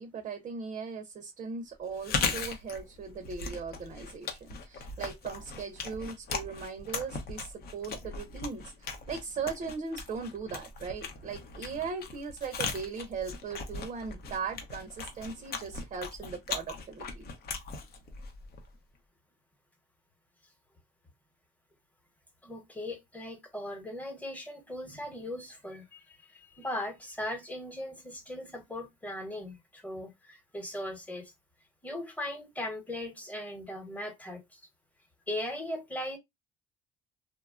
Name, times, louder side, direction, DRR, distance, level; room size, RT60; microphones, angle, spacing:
voice 1, 0.0-17.2, right 5 dB, 45° right, 0.5 m, -38 dB
Chewing mastication, 1.9-18.8, left 5 dB, 65° left, 0.7 m, -38 dB
voice 2, 22.4-31.3 31.8-34.6 35.3-36.2, left 1 dB, 10° left, 0.9 m, -39 dB
2.9 x 2.1 x 2.4 m
cardioid pair, 110°, 17 cm